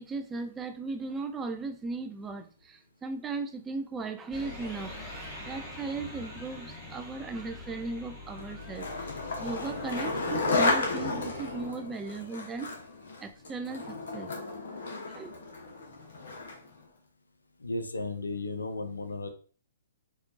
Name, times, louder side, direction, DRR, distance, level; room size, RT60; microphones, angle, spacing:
voice 1, 0.0-5.0 5.4-12.7 13.2-14.4 15.1-15.4, right 3 dB, 15° right, 6 dB, 0.3 m, -37 dB
sound 1, 4.3-11.7, left 1 dB, 5° left, 1.1 m, -44 dB
Skateboard, 8.4-16.7, left 3 dB, 60° left, 1.0 m, -33 dB
voice 2, 17.6-19.3, left 2 dB, 75° left, 7 dB, 0.5 m, -34 dB
4.2 x 2.4 x 2.6 m, 0.40 s
figure-of-eight pair, 120°, 0 cm